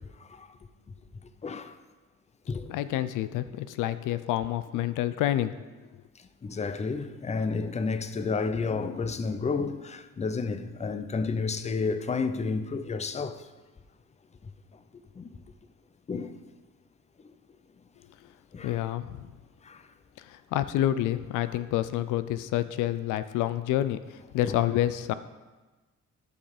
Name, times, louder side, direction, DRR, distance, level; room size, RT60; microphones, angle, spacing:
voice 1, 1.4-1.7 2.5-2.7 6.4-13.5 15.2-15.4 16.1-16.4 18.5-18.8 19.6-19.8 24.5-24.6, left 4 dB, 20° left, 0.6 m, -31 dB
voice 2, 2.7-5.6 18.6-19.3 20.2-25.1, left 13 dB, 85° left, 0.5 m, -28 dB
10.5 x 5.5 x 5.1 m
cardioid pair, 90°, 30 cm